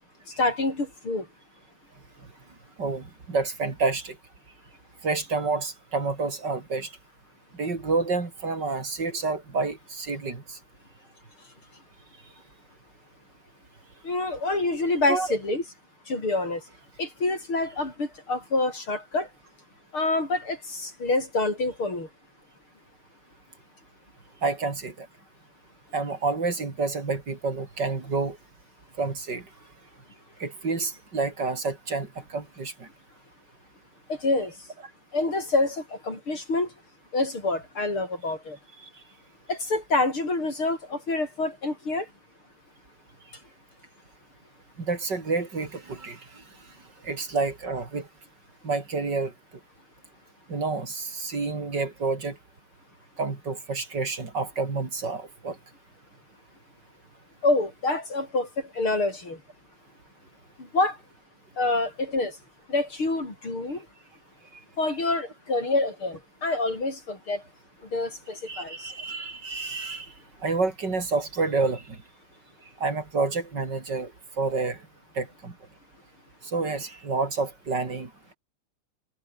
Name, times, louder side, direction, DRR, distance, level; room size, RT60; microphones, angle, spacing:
voice 1, 0.4-1.3 14.0-15.6 16.1-16.6 17.0-19.3 19.9-22.1 34.1-34.6 35.1-36.7 37.1-38.6 39.5-42.1 57.4-59.4 60.6-61.0 61.6-62.4 62.7-63.9 64.8-67.4 67.9-68.9, left 2 dB, 85° left, 8.8 m, -27 dB
voice 2, 2.8-4.2 5.0-6.9 7.5-10.6 15.1-15.3 24.4-25.1 25.9-28.4 29.0-29.4 30.4-32.9 38.8-38.9 44.8-46.2 47.0-48.1 48.6-49.3 50.5-52.4 53.2-55.6 68.5-70.1 70.4-72.0 72.8-74.1 74.4-74.8 75.2-75.5 76.4-78.3, right 3 dB, 55° right, 4.2 m, -29 dB
omnidirectional pair, 2.3 m